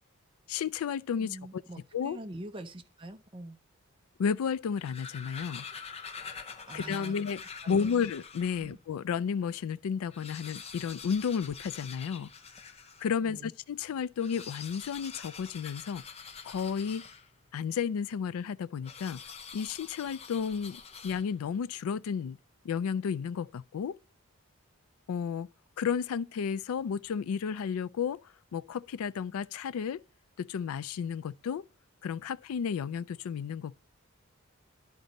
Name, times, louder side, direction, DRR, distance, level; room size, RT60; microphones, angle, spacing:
voice 1, 0.5-1.6 1.9-2.2 4.2-5.7 6.7-12.3 13.0-16.0 16.4-17.1 17.5-19.2 19.5-22.4 22.6-24.0 25.1-25.5 25.8-28.2 28.5-30.0 30.4-31.7 32.0-33.8, left 6 dB, 75° left, 0.3 m, -32 dB
voice 2, 1.1-3.6 6.7-7.1 7.6-8.0 8.6-8.8 13.2-13.5, right 1 dB, 25° right, 0.6 m, -44 dB
sound 1, 4.6-8.7 9.3-9.4 9.6-9.7 10.0-13.1 14.1-17.5 18.8-21.5, left 6 dB, 25° left, 0.5 m, -46 dB
11.5 x 4.0 x 5.2 m
head